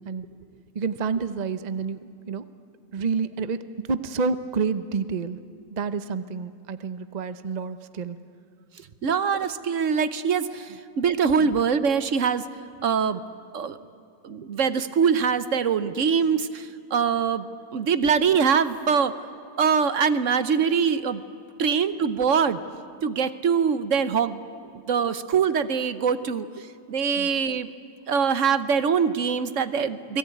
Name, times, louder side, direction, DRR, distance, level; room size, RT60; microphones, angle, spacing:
voice 1, 0.7-2.0 2.3-2.4 2.9-5.4 5.7-8.2 11.4-11.6 27.2-27.3, right 5 dB, 70° right, 12 dB, 0.4 m, -29 dB
voice 2, 9.0-12.4 12.8-13.2 13.5-13.8 14.2-19.1 19.6-21.2 21.6-22.6 23.0-24.4 24.7-27.7 28.1-30.2, right 6 dB, 50° right, 13 dB, 1.0 m, -23 dB
29.0 x 21.0 x 9.3 m, 2.3 s
omnidirectional pair, 2.0 m